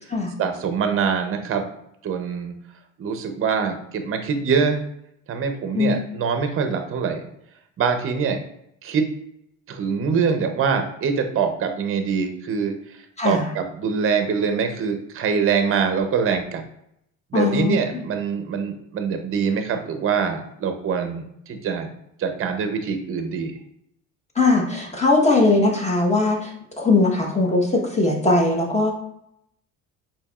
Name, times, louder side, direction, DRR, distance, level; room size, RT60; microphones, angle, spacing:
voice 1, 0.4-1.7 2.0-2.5 3.0-4.8 5.3-7.3 7.8-8.4 8.8-9.1 9.7-12.7 13.2-16.6 17.3-21.9 22.2-23.6, right 6 dB, 40° right, 6 dB, 0.6 m, -24 dB
voice 2, 13.2-13.5 17.3-18.0 24.3-29.0, left 3 dB, 20° left, 0 dB, 1.0 m, -20 dB
4.5 x 2.9 x 2.3 m, 0.75 s
supercardioid pair, 90°, 35 cm